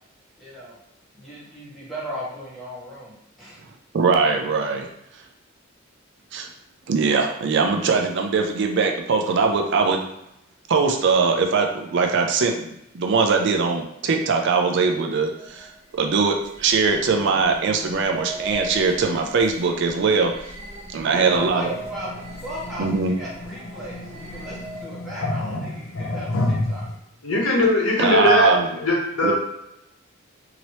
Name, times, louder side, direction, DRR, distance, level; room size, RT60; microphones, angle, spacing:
voice 1, 0.4-0.8 1.1-3.6 21.1-26.9, equal, ahead, -8 dB, 1.1 m, -36 dB
voice 2, 3.9-4.9 6.3-6.5 6.9-10.0 10.7-15.7 15.9-20.3 20.9-21.7 22.8-23.1 28.0-28.6 29.2-29.3, right 4 dB, 60° right, 3 dB, 0.4 m, -21 dB
sound 1, 15.3-25.1, right 1 dB, 25° right, 0.8 m, -39 dB
sound 2, 21.1-27.0, left 1 dB, 70° left, 0.5 m, -30 dB
voice 3, 27.2-29.3, left 2 dB, 85° left, -3 dB, 1.0 m, -20 dB
2.8 x 2.8 x 3.0 m, 0.82 s
head